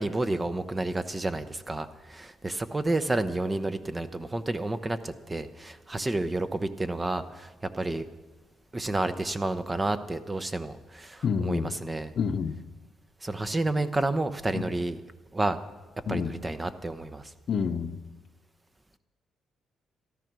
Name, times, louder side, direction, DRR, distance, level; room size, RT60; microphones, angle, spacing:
voice 1, 0.0-8.1 8.7-12.1 13.2-15.0 15.3-15.6 16.1-17.3, right 2 dB, 20° right, 11 dB, 0.9 m, -30 dB
voice 2, 11.2-11.7 12.2-12.5 16.1-16.3 17.5-17.9, left 6 dB, 60° left, 10 dB, 0.9 m, -27 dB
13.5 x 12.5 x 6.2 m, 1.2 s
cardioid pair, 90°, 0 cm